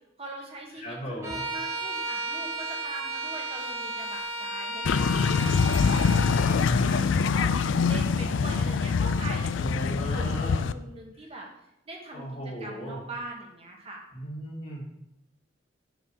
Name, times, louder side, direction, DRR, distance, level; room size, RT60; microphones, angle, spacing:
voice 1, 0.2-11.5 11.9-12.3 12.6-14.0, right 2 dB, 30° right, -1 dB, 1.9 m, -42 dB
voice 2, 0.8-1.4 6.4-7.2 9.6-10.7 12.1-13.0 14.1-14.9, equal, 45° left, -9 dB, 2.2 m, -37 dB
Bowed string instrument, 1.2-6.6, right 2 dB, 15° right, 2.2 m, -34 dB
sound 1, 4.8-10.7, left 5 dB, 75° left, 0.4 m, -24 dB
9.2 x 4.6 x 6.2 m, 0.86 s
head